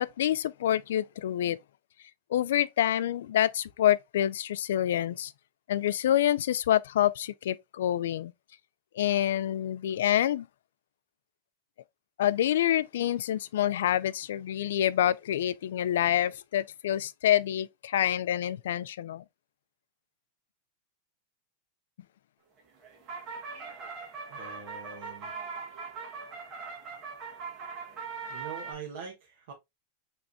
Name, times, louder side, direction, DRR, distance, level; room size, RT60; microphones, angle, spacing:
voice 1, 0.0-1.6 2.3-5.3 5.7-8.3 9.0-10.5 12.2-19.2, left 11 dB, 85° left, 0.3 m, -27 dB
sound 1, 22.6-28.7, right 5 dB, 30° right, 1.4 m, -40 dB
voice 2, 24.3-25.3 28.3-29.5, right 6 dB, 60° right, 1.2 m, -43 dB
5.3 x 3.3 x 2.6 m
supercardioid pair, 165°, 0 cm